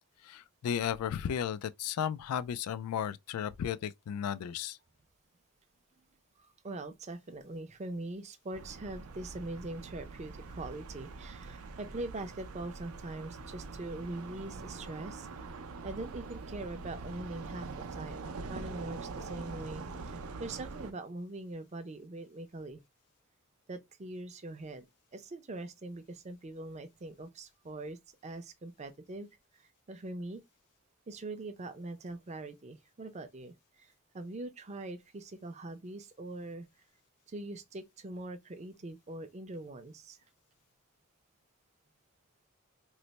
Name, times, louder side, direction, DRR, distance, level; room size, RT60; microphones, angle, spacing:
voice 1, 0.2-4.8, left 8 dB, 90° left, 0.3 m, -34 dB
voice 2, 6.4-15.3 15.8-22.8 23.7-24.9 25.1-29.3 29.5-29.6 29.9-30.4 31.1-36.7 37.3-40.2, right 2 dB, 30° right, 0.4 m, -42 dB
sound 1, 8.5-20.9, right 4 dB, 85° right, 0.5 m, -44 dB
3.1 x 2.0 x 4.0 m
head